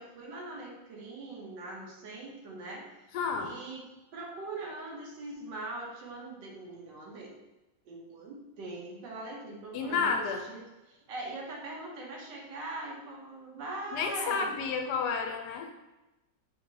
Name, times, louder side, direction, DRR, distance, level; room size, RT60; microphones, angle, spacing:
voice 1, 0.0-2.8 3.4-7.3 7.9-14.6, right 2 dB, 85° right, -2 dB, 1.5 m, -42 dB
voice 2, 3.1-3.5 9.7-10.5 13.9-15.7, left 5 dB, 75° left, 4 dB, 1.1 m, -31 dB
3.8 x 3.5 x 3.2 m, 1.0 s
omnidirectional pair, 1.9 m